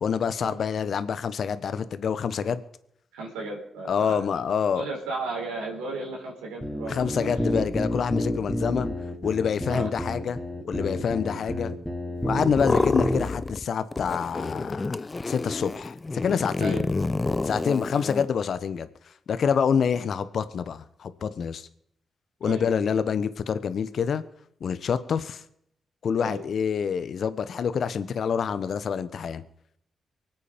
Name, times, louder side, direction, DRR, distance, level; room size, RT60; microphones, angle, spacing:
voice 1, 0.0-2.6 3.8-4.8 6.9-8.9 9.2-10.4 10.6-11.7 12.2-15.0 15.3-16.8 17.4-18.9 19.3-21.7 22.4-24.2 24.6-25.4 26.0-29.4, left 7 dB, 65° left, 13 dB, 1.2 m, -27 dB
voice 2, 3.1-4.2 4.8-7.3 9.7-9.9 12.7-12.9 16.6-16.8 17.9-18.0 22.4-22.6 26.2-26.4, right 2 dB, 85° right, -2 dB, 4.1 m, -34 dB
sound 1, 6.6-12.6 13.0-13.3, left 1 dB, ahead, 3.6 m, -30 dB
sound 2, 12.4-13.6 13.9-18.3, left 3 dB, 30° left, 0.7 m, -28 dB
24.0 x 8.4 x 5.2 m, 0.72 s
hypercardioid pair, 40°, 0 cm